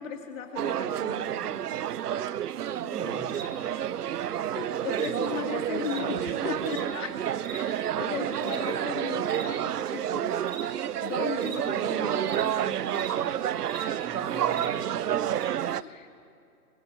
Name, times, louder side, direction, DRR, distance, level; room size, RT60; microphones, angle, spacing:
voice 1, 0.0-1.5 4.5-7.2 7.5-10.3 11.0-13.5 15.7-16.1, left 7 dB, 55° left, 4 dB, 2.7 m, -37 dB
sound 1, 0.6-15.8, right 10 dB, 85° right, 0.7 m, -29 dB
voice 2, 2.7-3.3 14.0-15.5, right 3 dB, 10° right, 1 dB, 1.8 m, -41 dB
sound 2, 3.1-15.5, right 4 dB, 60° right, 3.6 m, -47 dB
23.0 x 17.5 x 8.2 m, 2.5 s
hypercardioid pair, 150°, 45 cm